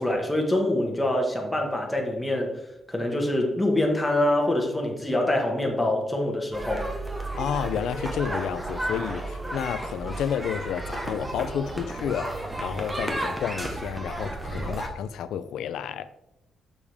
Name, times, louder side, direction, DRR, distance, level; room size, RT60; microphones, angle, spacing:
voice 1, 0.0-2.5 2.9-6.9, left 1 dB, 10° left, 1 dB, 1.5 m, -25 dB
sound 1, 6.5-14.9, right 1 dB, 15° right, 1.2 m, -32 dB
voice 2, 7.4-16.1, left 8 dB, 90° left, 14 dB, 0.4 m, -31 dB
7.1 x 6.7 x 3.5 m, 0.90 s
cardioid pair, 125°, 0 cm